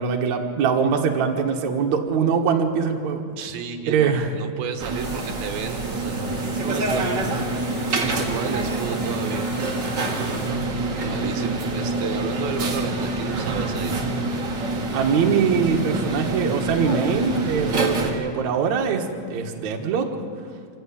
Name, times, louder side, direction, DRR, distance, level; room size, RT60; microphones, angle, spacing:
voice 1, 0.0-3.3 3.9-4.3 10.5-10.7 14.9-20.1, right 6 dB, 55° right, 2 dB, 2.5 m, -22 dB
voice 2, 3.4-7.3 7.9-9.8 10.1-10.5 11.0-14.0, right 7 dB, 80° right, 6 dB, 2.9 m, -32 dB
sound 1, 4.8-18.1, right 2 dB, 35° right, 2.0 m, -26 dB
sound 2, 5.0-10.5, left 3 dB, 50° left, 4.5 m, -45 dB
25.5 x 15.5 x 8.6 m, 2.3 s
omnidirectional pair, 4.4 m